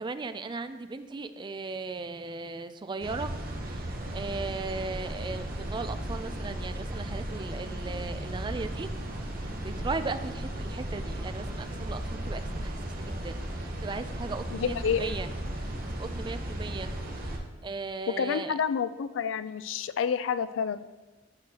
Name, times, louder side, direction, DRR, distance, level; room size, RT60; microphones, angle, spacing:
voice 1, 0.0-3.3 3.6-8.9 9.6-15.3 15.5-15.7 16.0-18.5, right 3 dB, 25° right, 10 dB, 0.4 m, -37 dB
sound 1, 3.0-17.4, right 1 dB, 50° right, 0.9 m, -35 dB
voice 2, 14.5-15.1 18.1-20.9, left 7 dB, 85° left, 13 dB, 0.3 m, -29 dB
8.5 x 6.3 x 2.9 m, 1.2 s
head